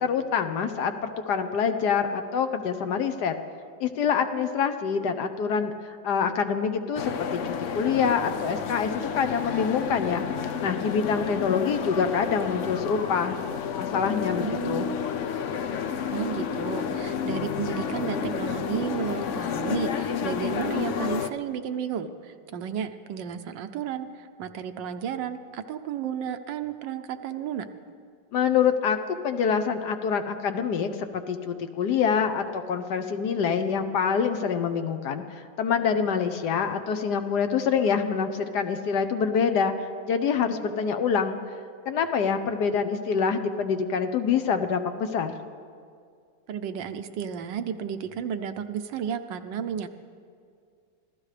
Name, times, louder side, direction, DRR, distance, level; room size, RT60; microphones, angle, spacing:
voice 1, 0.0-3.3 3.8-13.4 13.8-14.9 28.3-41.4 41.9-45.4, left 6 dB, 65° left, 8 dB, 1.2 m, -26 dB
sound 1, 6.9-21.3, left 7 dB, 85° left, 0.6 m, -30 dB
voice 2, 14.3-15.0 16.1-27.7 46.5-49.9, right 8 dB, 75° right, 9 dB, 1.3 m, -33 dB
25.5 x 15.5 x 3.3 m, 2.3 s
omnidirectional pair, 2.1 m